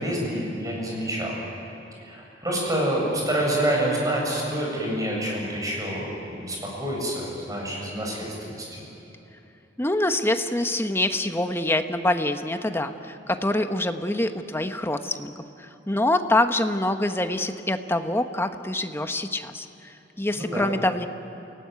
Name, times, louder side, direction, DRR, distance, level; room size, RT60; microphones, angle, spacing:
voice 1, 0.0-1.4 2.0-8.8 20.4-20.7, right 1 dB, 20° right, -2 dB, 7.6 m, -27 dB
voice 2, 9.8-15.3 15.6-21.1, left 1 dB, 15° left, 7 dB, 1.1 m, -25 dB
28.5 x 18.5 x 9.4 m, 3.0 s
head